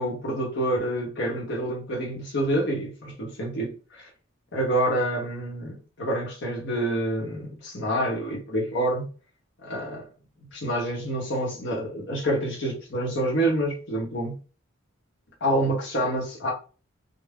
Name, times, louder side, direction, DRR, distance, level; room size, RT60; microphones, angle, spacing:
voice 1, 0.0-4.1 4.5-9.1 9.6-10.0 10.5-14.4 15.4-16.5, right 1 dB, 60° left, 1.0 m, -27 dB
2.5 x 2.1 x 3.4 m
head